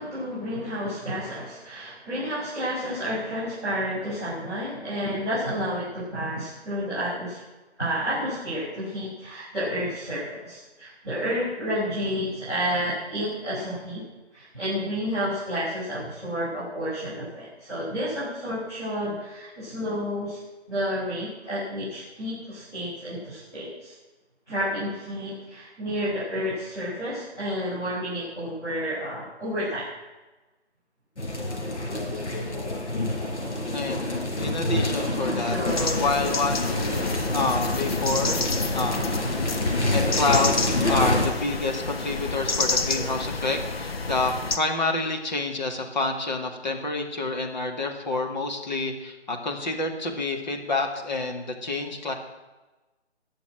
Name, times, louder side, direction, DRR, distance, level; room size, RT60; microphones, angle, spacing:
voice 1, 0.0-7.4 7.8-14.0 14.3-20.4 20.7-23.9 24.5-29.9 32.9-33.1 35.1-36.0, equal, 5° left, -15 dB, 5.2 m, -30 dB
sound 1, 31.2-41.3, left 2 dB, 85° left, 4.8 m, -27 dB
voice 2, 33.7-34.0 34.4-35.6 36.0-38.4 38.7-39.2 39.9-52.1, left 3 dB, 40° left, 3 dB, 2.1 m, -28 dB
sound 2, 35.7-44.6, left 3 dB, 60° left, 1.6 m, -29 dB
18.5 x 7.1 x 7.6 m, 1.1 s
hypercardioid pair, 170°, 34 cm